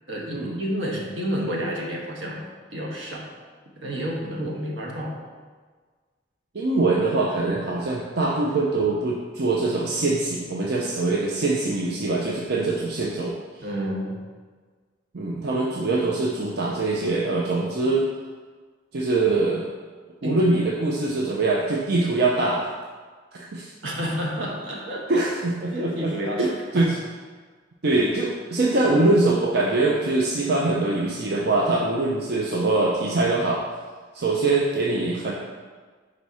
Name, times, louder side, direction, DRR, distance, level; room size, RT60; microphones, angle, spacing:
voice 1, 0.1-2.4 2.7-3.3 3.8-5.2 13.6-14.1 20.2-20.4 20.9-21.3 23.8-25.3 25.7-26.9 31.4-31.5, equal, 80° right, -2 dB, 1.2 m, -30 dB
voice 2, 6.5-13.4 15.1-18.1 18.9-19.6 20.2-22.7 23.3-23.7 25.1-26.1 26.4-26.5 26.7-27.0 27.8-33.6 34.1-35.3, right 2 dB, 60° right, -2 dB, 0.6 m, -23 dB
5.1 x 4.1 x 4.7 m, 1.5 s
head